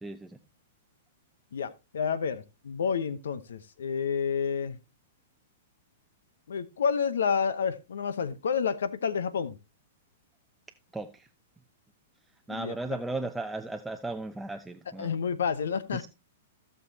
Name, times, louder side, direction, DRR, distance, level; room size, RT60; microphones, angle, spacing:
voice 1, 0.0-0.4 10.9-11.3 12.5-15.2 15.9-16.1, right 2 dB, 5° right, 0.6 m, -36 dB
voice 2, 1.5-4.8 6.5-9.6 12.5-12.7 15.0-16.0, left 6 dB, 75° left, 0.9 m, -29 dB
16.5 x 6.7 x 2.8 m
hypercardioid pair, 115°, 0 cm